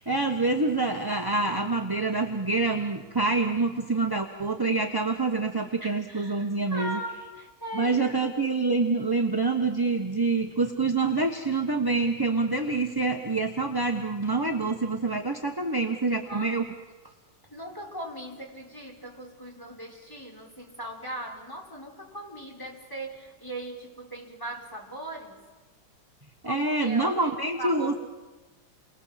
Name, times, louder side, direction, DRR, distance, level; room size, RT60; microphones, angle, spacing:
voice 1, 0.0-7.0 7.7-16.6 26.4-28.0, right 3 dB, 15° right, 3 dB, 1.0 m, -26 dB
voice 2, 5.8-8.1 16.3-16.5 17.5-25.4 26.4-27.3 27.6-28.0, right 1 dB, 10° left, -1 dB, 5.4 m, -39 dB
30.0 x 23.5 x 7.7 m, 1.3 s
omnidirectional pair, 2.2 m